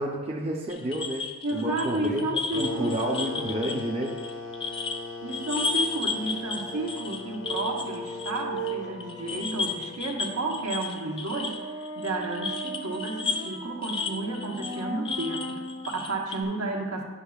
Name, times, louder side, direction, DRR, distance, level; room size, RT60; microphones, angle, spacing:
voice 1, 0.0-2.2 2.6-4.2, right 1 dB, 30° right, -1 dB, 0.6 m, -30 dB
sound 1, 0.7-5.0 5.3-8.7 9.0-16.4, left 4 dB, 25° left, 0.3 m, -33 dB
voice 2, 1.4-3.0 5.2-17.0, right 2 dB, 80° right, 0 dB, 1.1 m, -32 dB
sound 2, 2.5-10.9, left 4 dB, 65° left, 0.6 m, -39 dB
Rhinoceros Trumpeting Musical, 6.7-16.1, right 2 dB, 85° left, 1.1 m, -38 dB
9.8 x 6.0 x 2.4 m, 1.3 s
head